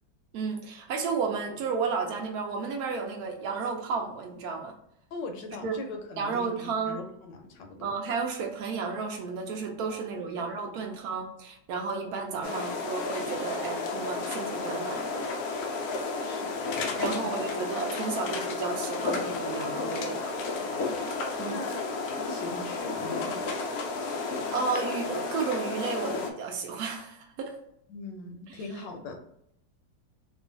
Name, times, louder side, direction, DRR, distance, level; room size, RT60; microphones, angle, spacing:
voice 1, 0.3-4.7 5.6-5.7 6.2-7.0 7.8-15.3 16.2-16.3 17.0-20.4 21.4-21.6 24.1-27.5 28.5-28.6, right 5 dB, 80° right, 2 dB, 0.8 m, -33 dB
voice 2, 5.1-8.0 9.9-10.9 16.2-17.3 20.6-20.7 21.4-21.9 22.2-23.5 27.9-29.2, left 3 dB, 75° left, 4 dB, 1.1 m, -41 dB
sound 1, 12.4-26.3, left 3 dB, 90° left, 0.8 m, -32 dB
3.1 x 2.3 x 3.7 m, 0.75 s
omnidirectional pair, 2.2 m